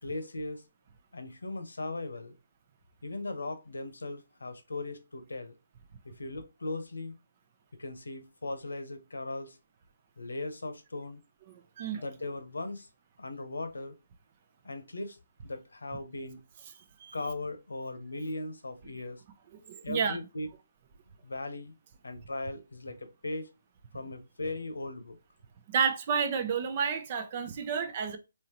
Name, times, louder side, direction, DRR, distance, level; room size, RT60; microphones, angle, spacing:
voice 1, 0.0-0.6 1.1-2.3 3.0-5.5 6.0-7.1 7.8-9.6 10.2-11.2 11.9-12.9 13.2-13.9 14.6-15.2 15.4-16.4 17.1-19.2 19.8-20.5 21.2-21.7 22.0-23.5 23.9-25.2, left 2 dB, 85° left, 0.9 m, -38 dB
voice 2, 19.5-20.2 25.7-28.2, right 6 dB, 35° right, 0.6 m, -30 dB
3.7 x 2.9 x 2.9 m
figure-of-eight pair, 150°, 0 cm